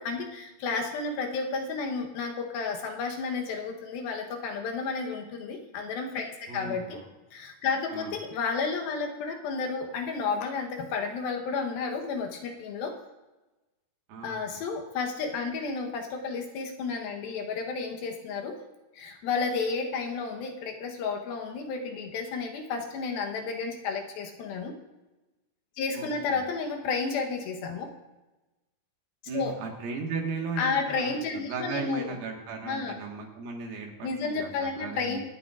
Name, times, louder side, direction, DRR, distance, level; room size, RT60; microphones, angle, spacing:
voice 1, 0.0-7.0 7.3-12.9 14.2-18.6 18.9-24.8 25.8-27.9 29.3-29.5 30.6-32.2 32.6-33.0 34.0-35.2, left 4 dB, 75° left, 3 dB, 2.7 m, -32 dB
voice 2, 6.5-7.1 7.9-8.1 14.1-14.6 25.9-26.4 29.3-35.2, right 4 dB, 70° right, 1 dB, 3.2 m, -36 dB
24.5 x 9.4 x 2.4 m, 1.1 s
omnidirectional pair, 4.6 m